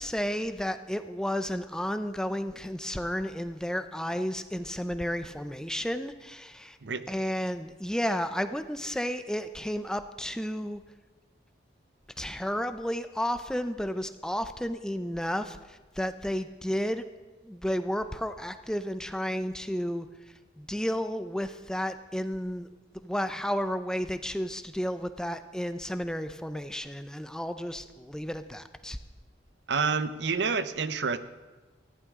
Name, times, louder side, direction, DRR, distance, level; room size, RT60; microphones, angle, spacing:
voice 1, 0.0-6.8 7.1-10.8 12.2-17.0 17.4-20.1 20.6-22.7 23.0-29.0, equal, 5° left, 9 dB, 0.5 m, -32 dB
voice 2, 29.7-31.2, right 5 dB, 75° right, 12 dB, 0.7 m, -28 dB
19.0 x 14.5 x 3.7 m, 1.2 s
head